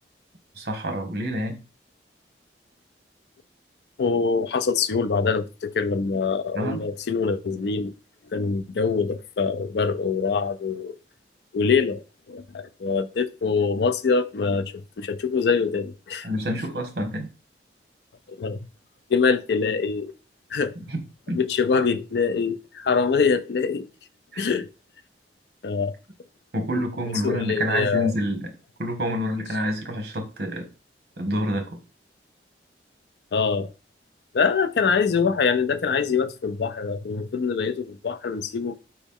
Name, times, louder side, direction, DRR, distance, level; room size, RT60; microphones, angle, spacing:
voice 1, 0.5-1.6 6.5-6.8 16.2-17.3 20.9-21.0 21.3-21.4 24.3-24.5 26.5-28.5 28.8-30.7 31.2-31.8, equal, 65° right, 1.0 m, -27 dB
voice 2, 4.0-7.9 8.3-11.0 11.5-12.0 12.3-16.3 18.3-18.7 19.1-20.1 20.5-20.7 21.3-23.9 24.4-24.7 25.6-25.9 26.7-26.8 27.2-28.1 33.3-33.7 34.3-38.8, left 5 dB, 70° left, 0.4 m, -24 dB
4.6 x 3.0 x 3.5 m
head